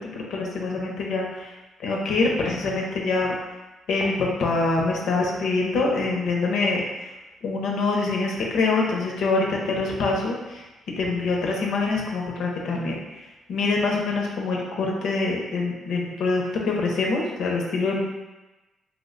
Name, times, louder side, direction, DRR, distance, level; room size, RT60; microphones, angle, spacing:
voice 1, 0.0-1.5 1.8-3.3 3.9-7.1 7.4-10.6 11.0-18.0, left 3 dB, 70° left, -1 dB, 0.6 m, -25 dB
3.0 x 2.1 x 3.8 m, 1.1 s
cardioid pair, 90°, 0 cm